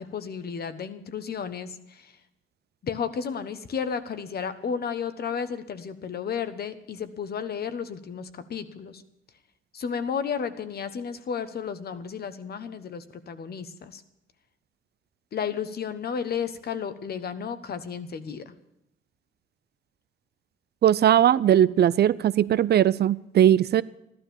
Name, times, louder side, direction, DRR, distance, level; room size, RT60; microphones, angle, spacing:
voice 1, 0.0-2.1 2.8-9.0 9.7-14.0 15.3-18.5, left 7 dB, 50° left, 11 dB, 1.2 m, -33 dB
voice 2, 20.8-23.8, right 10 dB, 55° right, 18 dB, 0.5 m, -19 dB
15.0 x 12.0 x 7.1 m, 0.84 s
wide cardioid pair, 150°, 20 cm